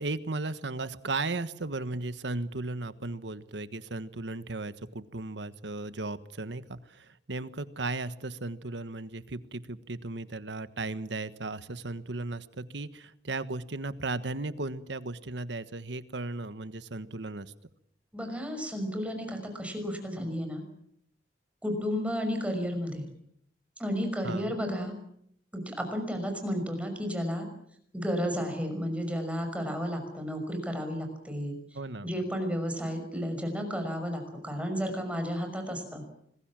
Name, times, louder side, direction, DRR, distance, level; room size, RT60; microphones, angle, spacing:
voice 1, 0.0-17.5 24.2-24.5 31.7-32.1, right 2 dB, 85° right, 13 dB, 1.4 m, -36 dB
voice 2, 18.1-20.6 21.6-23.1 23.8-25.0 25.5-27.5 27.9-31.6 32.0-36.0, equal, 10° right, 5 dB, 5.7 m, -32 dB
26.0 x 21.0 x 7.5 m, 0.70 s
head